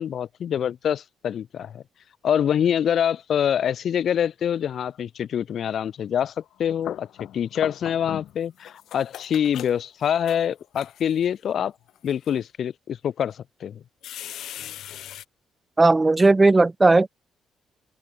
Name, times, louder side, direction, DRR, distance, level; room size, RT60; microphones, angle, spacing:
voice 1, 0.0-1.8 2.2-6.3 6.6-7.1 7.3-11.7 12.0-13.8, left 9 dB, 60° left, 4.2 m, -25 dB
sound 1, 6.5-8.4 8.6-11.2 11.9-12.3 13.0-13.1 14.0-15.2, left 12 dB, 75° left, 6.1 m, -39 dB
voice 2, 15.8-17.1, right 3 dB, 20° right, 0.6 m, -16 dB
open air
cardioid pair, 90°, 0 cm